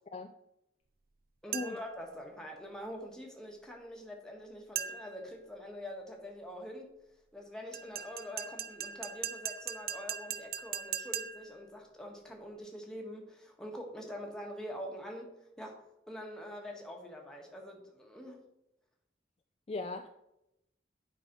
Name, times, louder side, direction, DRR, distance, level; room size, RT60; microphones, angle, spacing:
voice 1, 1.4-6.9 7.3-18.4, equal, 5° left, 0 dB, 1.5 m, -45 dB
sound 1, 1.5-2.0 4.8-5.3 7.7-11.6, right 9 dB, 55° right, 0.5 m, -39 dB
voice 2, 19.7-20.1, left 3 dB, 35° left, 6 dB, 0.4 m, -38 dB
9.6 x 5.0 x 5.3 m, 0.86 s
head